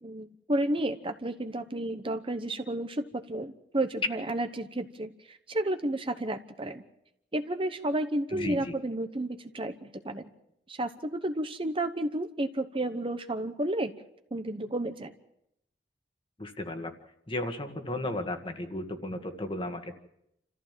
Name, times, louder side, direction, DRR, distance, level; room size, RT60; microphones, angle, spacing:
voice 1, 0.0-6.8 7.3-10.3 10.7-13.9 14.3-15.1, right 1 dB, 30° right, 8 dB, 0.9 m, -32 dB
voice 2, 8.3-8.7 16.4-16.9 17.3-19.9, left 1 dB, 30° left, 6 dB, 1.8 m, -34 dB
28.5 x 14.5 x 7.4 m, 0.81 s
head